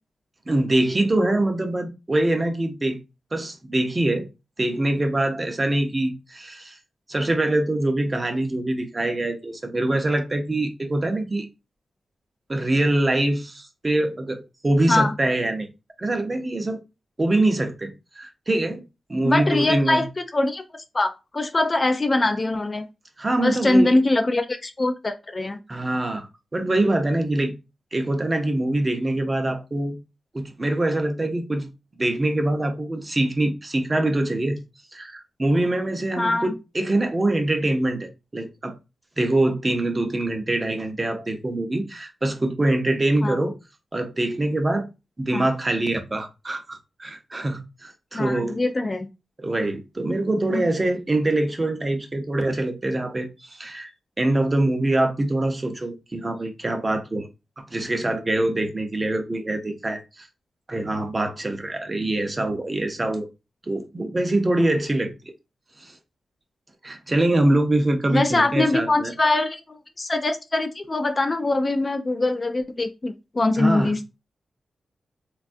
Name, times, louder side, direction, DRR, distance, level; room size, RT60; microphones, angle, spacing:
voice 1, 0.5-3.0 3.3-4.3 4.6-6.8 7.1-11.5 12.5-15.7 16.0-16.8 17.2-18.8 19.1-20.1 23.2-24.0 25.7-26.3 26.5-27.5 27.9-30.0 30.3-31.7 32.0-34.6 34.9-38.7 39.2-43.5 43.9-44.8 45.2-48.6 49.4-53.9 54.2-57.3 57.6-60.3 60.7-63.3 63.6-65.1 65.8-65.9 66.8-69.1 73.6-73.9, right 1 dB, 25° right, 0.5 m, -24 dB
voice 2, 19.2-20.1 20.3-22.8 23.4-25.6 36.2-36.5 43.2-43.4 45.3-45.5 48.1-49.1 50.5-50.7 68.1-74.2, left 2 dB, 30° left, 0.3 m, -23 dB
3.3 x 2.3 x 2.5 m
wide cardioid pair, 95°, 0 cm